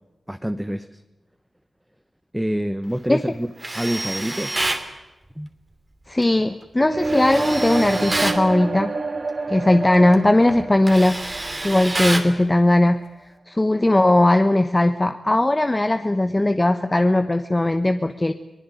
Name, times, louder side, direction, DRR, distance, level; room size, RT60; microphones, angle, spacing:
voice 1, 0.3-1.0 2.3-4.5 5.4-5.5, equal, 5° right, 10 dB, 1.1 m, -27 dB
Tools, 3.6-4.9 7.0-8.4 9.9-10.1 10.5-12.3, right 2 dB, 25° right, 2.8 m, -27 dB
voice 2, 6.1-8.9 9.5-11.2 11.6-13.0 13.5-18.3, left 1 dB, 20° left, 9 dB, 1.1 m, -18 dB
sound 1, 6.8-12.7, right 3 dB, 55° right, 3.0 m, -28 dB
24.0 x 20.0 x 9.4 m, 1.1 s
wide cardioid pair, 75°, 0 cm